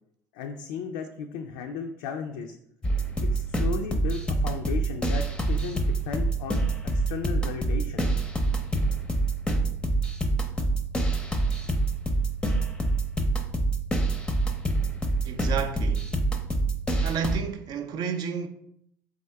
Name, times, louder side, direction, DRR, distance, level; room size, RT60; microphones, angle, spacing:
voice 1, 0.3-2.6 3.2-6.6 6.9-8.1, left 6 dB, 70° left, 0.3 m, -35 dB
sound 1, 2.8-17.4, right 2 dB, 10° left, 0.6 m, -26 dB
voice 2, 15.2-16.2 17.0-18.5, right 6 dB, 50° right, 0.5 m, -31 dB
3.7 x 3.5 x 3.3 m
hypercardioid pair, 65°, 9 cm